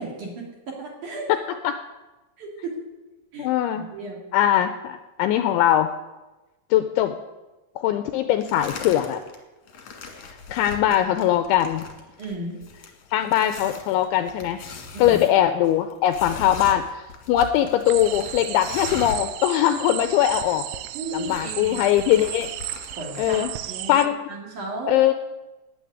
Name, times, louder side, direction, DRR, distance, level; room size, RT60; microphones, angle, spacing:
voice 1, 0.0-1.3 2.4-2.7 3.3-3.5 3.7-4.2 12.2-12.6 14.9-15.2 20.9-21.8 23.0-25.0, right 2 dB, 45° right, -2 dB, 3.7 m, -34 dB
voice 2, 3.4-3.9 4.3-5.9 6.7-7.2 7.8-9.2 10.5-11.8 13.1-14.6 15.0-20.6 21.1-22.5 23.2-23.5 23.9-24.2 24.9-25.1, left 12 dB, 85° left, 8 dB, 2.7 m, -21 dB
sound 1, 8.4-9.4 9.7-19.3 19.6-19.7 19.9-20.6 20.9-23.4, left 4 dB, 50° left, 2.2 m, -40 dB
sound 2, 17.9-24.1, right 15 dB, 85° right, 3.4 m, -34 dB
12.0 x 9.5 x 9.5 m, 1.1 s
omnidirectional pair, 5.9 m